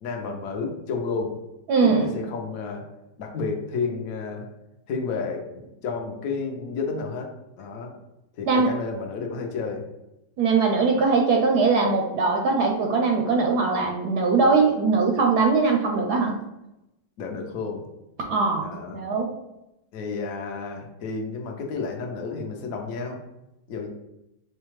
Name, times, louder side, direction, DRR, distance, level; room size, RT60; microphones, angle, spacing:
voice 1, 0.0-1.3 1.8-2.8 3.2-4.4 4.9-5.5 5.8-7.3 7.6-7.9 8.4-9.8 17.2-17.8 18.6-19.0 19.9-23.2 23.7-23.9, left 4 dB, 65° left, 2 dB, 0.9 m, -31 dB
voice 2, 1.7-2.2 8.5-8.7 10.4-16.4 18.3-19.3, right 4 dB, 70° right, 2 dB, 1.0 m, -21 dB
4.9 x 2.2 x 3.1 m, 0.91 s
omnidirectional pair, 2.0 m